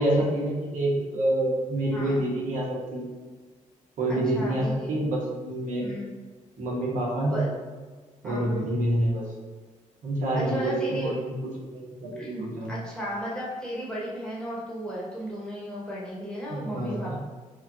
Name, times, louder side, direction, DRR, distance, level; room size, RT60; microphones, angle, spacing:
voice 1, 0.0-3.1 4.0-5.8 6.6-7.4 8.2-9.3 10.0-11.3 11.6-12.7 16.5-17.2, right 1 dB, 70° right, -4 dB, 1.1 m, -27 dB
voice 2, 1.9-2.2 4.1-4.9 5.8-6.1 7.3-7.5 8.2-8.7 10.3-11.1 12.1-17.2, equal, 5° left, -6 dB, 1.0 m, -35 dB
5.2 x 2.3 x 2.7 m, 1.4 s
cardioid pair, 135°, 14 cm